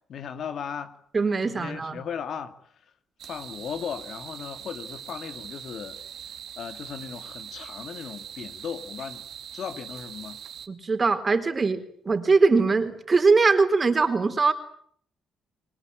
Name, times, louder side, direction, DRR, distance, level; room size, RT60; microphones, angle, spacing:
voice 1, 0.1-1.0 1.5-2.5 3.2-6.0 6.6-9.2 9.5-10.4, left 7 dB, 65° left, 2.3 m, -36 dB
voice 2, 1.1-2.0 10.7-14.5, right 4 dB, 30° right, 4.0 m, -22 dB
sound 1, 3.2-10.7, right 9 dB, 70° right, 2.6 m, -42 dB
28.0 x 22.0 x 9.0 m
cardioid pair, 90°, 0 cm